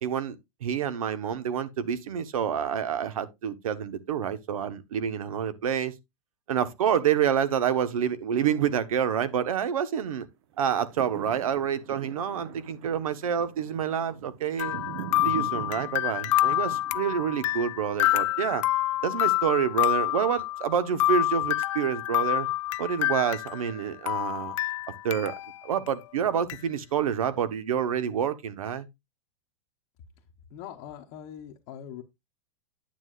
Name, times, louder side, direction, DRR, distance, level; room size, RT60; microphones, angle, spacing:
voice 1, 0.0-5.9 6.5-10.3 10.6-14.8 15.2-18.6 19.0-22.5 22.8-24.5 25.0-25.3 25.6-28.9, right 8 dB, 80° right, 1.3 m, -28 dB
sound 1, 10.6-18.8 19.3-19.4, right 10 dB, 50° right, 1.0 m, -43 dB
sound 2, 14.6-23.8 24.1-25.5 25.9-26.0 26.5-26.6, left 16 dB, 60° left, 0.4 m, -27 dB
voice 2, 30.5-32.0, left 10 dB, 35° left, 1.0 m, -42 dB
9.5 x 9.0 x 2.5 m
supercardioid pair, 160°, 18 cm